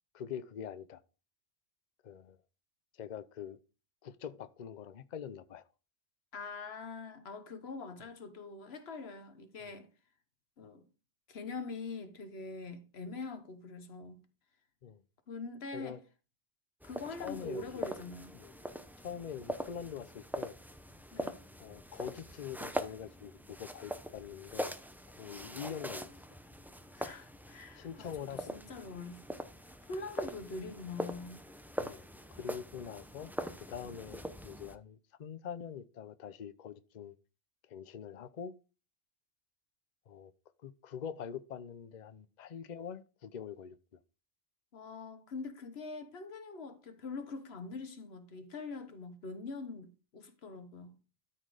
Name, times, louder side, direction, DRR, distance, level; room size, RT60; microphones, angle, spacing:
voice 1, 0.1-1.0 2.0-2.4 3.0-3.6 4.0-5.6 9.6-9.7 14.8-15.0 15.7-16.0 17.2-17.8 18.3-18.5 19.0-20.6 21.6-24.7 25.2-26.4 27.7-28.6 31.8-32.0 32.3-33.3 33.7-37.1 37.7-38.5 40.1-40.3 40.6-43.8, left 8 dB, 50° left, 0.7 m, -44 dB
voice 2, 6.3-9.9 10.6-10.8 11.3-14.2 15.3-16.0 16.8-18.4 21.1-21.4 26.9-29.2 29.8-31.4 44.7-51.0, left 3 dB, 85° left, 1.3 m, -44 dB
sound 1, 16.8-34.8, equal, ahead, 0.5 m, -43 dB
12.5 x 4.4 x 4.9 m
omnidirectional pair, 1.0 m